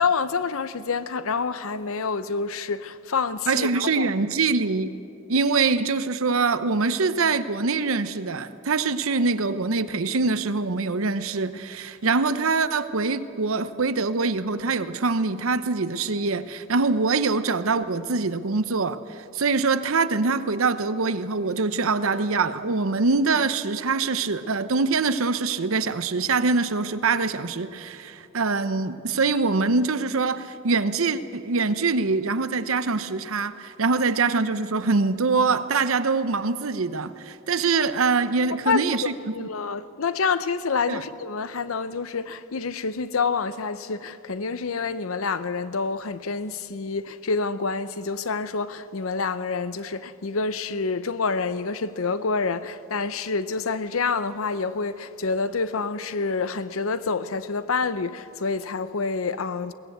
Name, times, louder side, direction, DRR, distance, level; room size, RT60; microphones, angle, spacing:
voice 1, 0.0-4.1 38.7-59.7, left 4 dB, 85° left, 0.8 m, -27 dB
voice 2, 3.5-4.9 5.3-39.5 40.9-41.0, right 4 dB, 80° right, 0.8 m, -24 dB
21.5 x 18.0 x 8.1 m
head